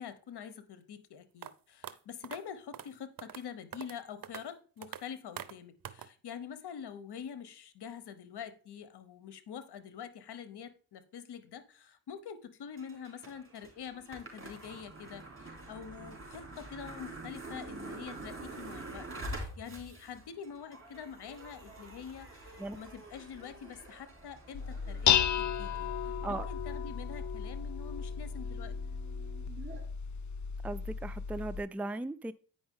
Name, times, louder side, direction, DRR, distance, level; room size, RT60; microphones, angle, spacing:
voice 1, 0.0-25.9 26.3-28.7, left 7 dB, 80° left, 0.9 m, -46 dB
sound 1, 1.4-1.5 1.8-1.9 2.2-2.4 2.7-2.9 3.2-3.4 3.7-4.0 4.2-4.4 4.8-5.0 5.4-5.5 5.8-6.1, right 10 dB, 60° right, 0.7 m, -43 dB
sound 2, 12.7-29.8, right 2 dB, 30° right, 3.3 m, -47 dB
Dishes pots and pans, 24.5-31.6, left 8 dB, 50° left, 0.5 m, -33 dB
voice 2, 30.6-32.3, right 2 dB, 5° right, 0.4 m, -37 dB
8.7 x 5.3 x 3.6 m
cardioid pair, 55°, 39 cm